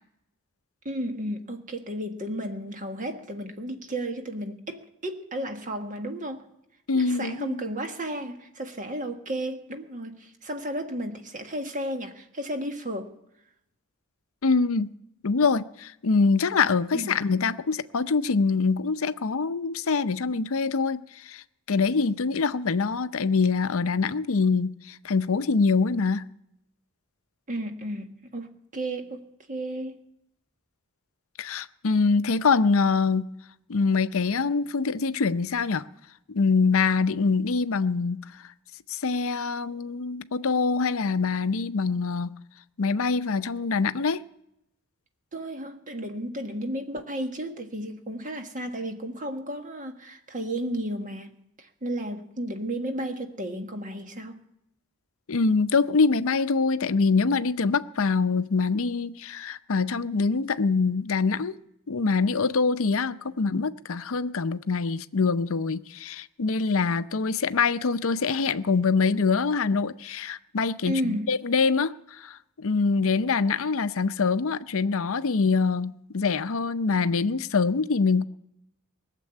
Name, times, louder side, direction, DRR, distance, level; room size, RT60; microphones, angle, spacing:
voice 1, 0.8-6.5 6.9-13.1 16.9-17.2 27.5-30.0 45.3-51.3 51.6-54.4 70.8-71.3, right 1 dB, 35° right, 1.6 m, -33 dB
voice 2, 6.9-7.6 14.4-14.9 15.2-21.4 21.7-26.2 31.4-33.3 33.7-35.8 36.3-38.2 38.9-42.4 42.8-44.2 55.3-61.5 61.9-78.2, left 4 dB, 65° left, 0.6 m, -24 dB
19.5 x 7.6 x 9.8 m
head